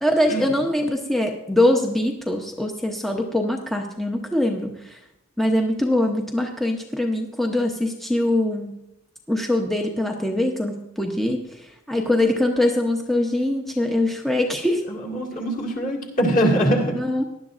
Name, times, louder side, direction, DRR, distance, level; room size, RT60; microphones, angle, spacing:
voice 1, 0.0-5.0 5.4-8.8 9.3-14.8 17.0-17.2, left 1 dB, ahead, 2 dB, 0.7 m, -23 dB
voice 2, 14.9-17.0, right 1 dB, 40° left, -2 dB, 2.0 m, -22 dB
18.5 x 11.0 x 2.5 m, 0.87 s
head